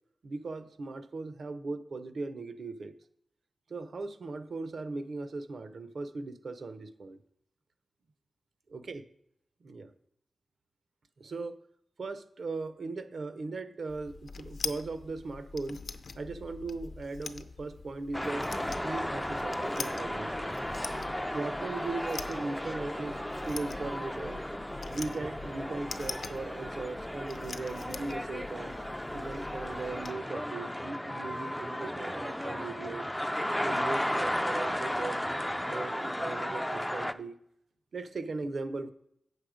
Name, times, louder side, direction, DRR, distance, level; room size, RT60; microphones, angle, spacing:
voice 1, 0.2-2.9 3.7-7.2 8.7-9.0 9.6-9.9 11.2-11.6 12.0-15.8 16.1-20.6 21.3-24.4 24.9-28.8 29.1-33.0 33.6-37.4 37.9-38.9, right 3 dB, 55° right, 0.6 m, -38 dB
sound 1, 13.9-30.1, left 4 dB, 60° left, 0.5 m, -44 dB
sound 2, 18.1-37.1, equal, 5° left, 0.3 m, -34 dB
8.4 x 6.4 x 5.0 m
wide cardioid pair, 145°, 0 cm